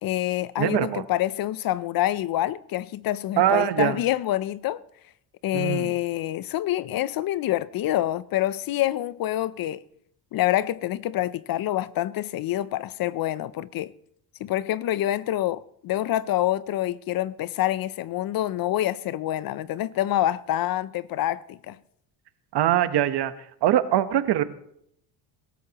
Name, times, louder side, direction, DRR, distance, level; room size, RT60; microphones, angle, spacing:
voice 1, 0.0-4.8 5.4-9.8 10.3-13.9 14.4-21.8, left 14 dB, 50° left, 0.5 m, -26 dB
voice 2, 0.6-1.0 3.4-4.0 5.5-5.9 22.5-23.3 23.6-24.4, right 12 dB, 55° right, 1.1 m, -22 dB
22.0 x 13.5 x 2.9 m
cardioid pair, 115°, 46 cm